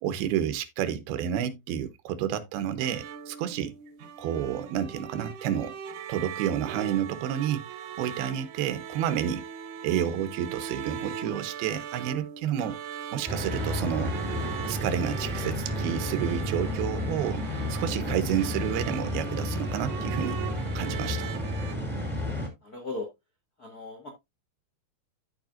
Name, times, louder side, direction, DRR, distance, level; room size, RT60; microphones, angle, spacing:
voice 1, 0.0-3.8 4.2-5.7 6.1-7.6 8.0-9.4 9.8-12.8 13.1-14.2 14.7-20.4 20.8-21.3, right 10 dB, 90° right, 2.8 m, -30 dB
sound 1, 2.8-21.7, right 8 dB, 75° right, 2.0 m, -40 dB
sound 2, 13.3-22.5, left 1 dB, 5° right, 1.2 m, -32 dB
voice 2, 22.6-23.1 23.6-24.1, left 3 dB, 75° left, 0.8 m, -37 dB
13.5 x 4.9 x 2.5 m
omnidirectional pair, 4.3 m